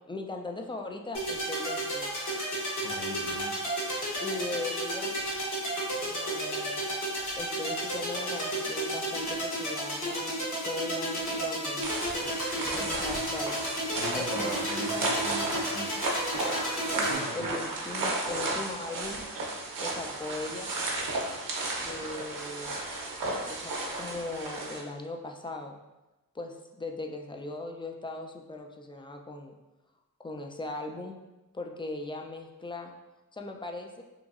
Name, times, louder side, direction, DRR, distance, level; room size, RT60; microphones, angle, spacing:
voice 1, 0.1-2.1 4.2-5.2 6.0-6.8 7.4-11.9 12.6-13.7 14.1-15.1 16.8-19.2 19.8-20.7 21.8-22.8 23.4-25.8 26.3-29.5 30.2-31.2 31.5-32.9 33.3-34.0, left 2 dB, 15° left, 3 dB, 0.3 m, -39 dB
sound 1, 1.1-17.1, right 1 dB, 60° left, 1.2 m, -32 dB
voice 2, 2.8-3.6 12.7-13.2 14.0-16.0 16.9-17.5, equal, 80° left, -2 dB, 0.7 m, -40 dB
sound 2, 11.8-24.8, right 2 dB, 65° right, 0.7 m, -33 dB
3.0 x 2.6 x 2.4 m, 1.0 s
cardioid pair, 50°, 35 cm